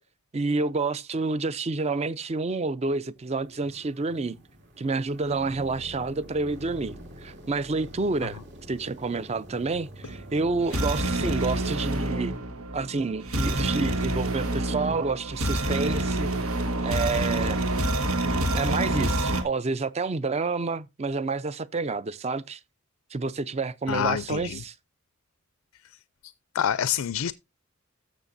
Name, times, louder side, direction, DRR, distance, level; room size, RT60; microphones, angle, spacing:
voice 1, 0.3-4.4 4.8-8.4 8.7-12.3 12.7-17.6 18.5-22.6 23.1-24.7, right 3 dB, 30° right, 0.5 m, -29 dB
sound 1, 3.2-12.4, equal, 55° right, 2.7 m, -46 dB
sound 2, 10.1-19.4, right 1 dB, 85° right, 1.5 m, -27 dB
voice 2, 23.9-24.6 26.2-27.3, left 9 dB, 85° left, 0.4 m, -27 dB
14.0 x 6.5 x 2.6 m
head